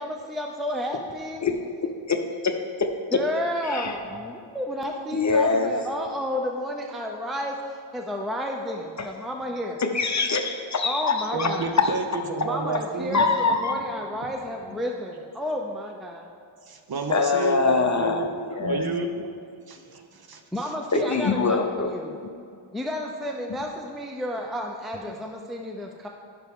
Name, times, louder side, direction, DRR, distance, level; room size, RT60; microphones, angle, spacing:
voice 1, 0.0-1.4 3.1-9.8 10.8-11.8 12.4-16.3 20.5-22.1 22.7-26.1, equal, ahead, 1 dB, 0.5 m, -31 dB
voice 2, 2.8-3.2 3.7-3.9 5.1-5.8 9.0-9.1 9.8-11.9 13.1-13.8 17.1-18.3 18.5-18.8 20.9-21.9, left 4 dB, 35° left, 4 dB, 0.7 m, -23 dB
voice 3, 11.3-13.2 16.6-19.3 19.7-20.7, right 3 dB, 50° right, 6 dB, 0.8 m, -31 dB
15.0 x 6.0 x 3.6 m, 2.4 s
wide cardioid pair, 150°, 49 cm